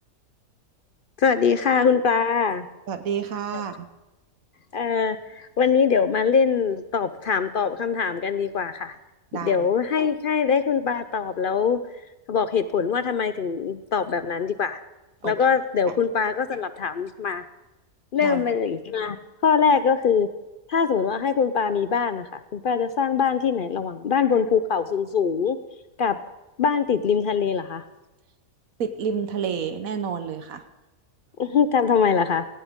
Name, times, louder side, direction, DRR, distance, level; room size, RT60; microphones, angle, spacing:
voice 1, 1.2-2.7 4.7-8.9 9.4-11.8 12.3-14.8 15.2-17.4 18.1-19.2 19.4-20.3 20.7-25.6 26.0-26.2 26.6-27.8 31.4-32.4, left 6 dB, 60° left, 12 dB, 0.5 m, -23 dB
voice 2, 2.9-3.9 9.3-9.7 15.2-15.4 18.2-18.4 28.8-30.6, right 7 dB, 70° right, 9 dB, 1.3 m, -29 dB
18.0 x 16.5 x 3.6 m, 1.0 s
omnidirectional pair, 1.5 m